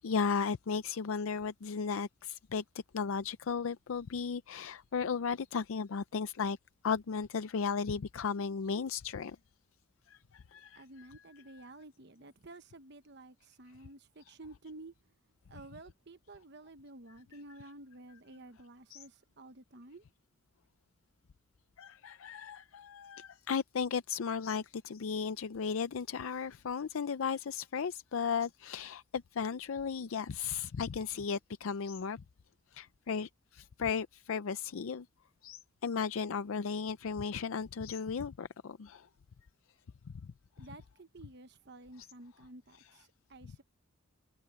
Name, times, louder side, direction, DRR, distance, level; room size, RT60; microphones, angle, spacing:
voice 1, 0.0-2.6 2.9-6.6 6.8-9.4 10.1-11.3 11.5-11.7 15.6-15.7 17.3-17.7 18.9-19.0 21.8-32.2 32.7-35.1 35.4-39.1 40.1-40.3 40.6-40.8 42.0-42.1 42.7-43.1 43.4-43.5, left 6 dB, 75° left, 0.5 m, -35 dB
voice 2, 10.7-15.1 15.5-20.1 40.6-43.6, right 2 dB, 55° right, 1.1 m, -52 dB
head